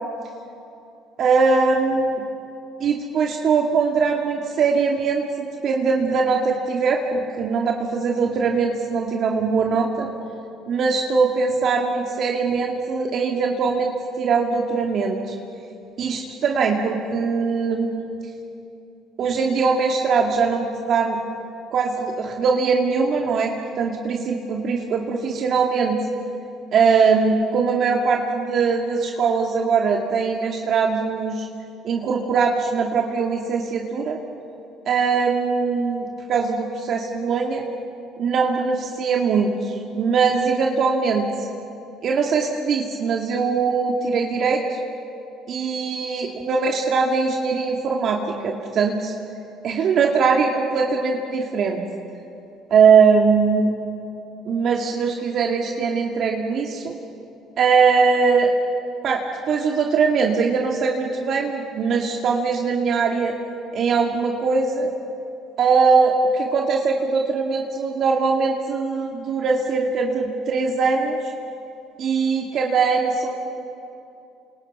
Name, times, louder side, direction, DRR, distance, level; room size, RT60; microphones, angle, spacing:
voice 1, 1.2-2.1 2.8-10.1 10.7-13.9 14.2-15.3 16.0-18.1 19.2-21.2 21.7-26.0 26.7-31.5 31.8-34.2 34.9-37.6 38.2-41.3 42.0-44.8 45.5-49.1 49.6-51.8 52.7-53.7 54.5-56.9 57.6-58.5 59.0-63.3 63.7-64.9 65.6-71.2 72.0-73.4, right 5 dB, 55° right, 1 dB, 2.3 m, -21 dB
28.5 x 27.0 x 5.6 m, 2.7 s
supercardioid pair, 75°, 0 cm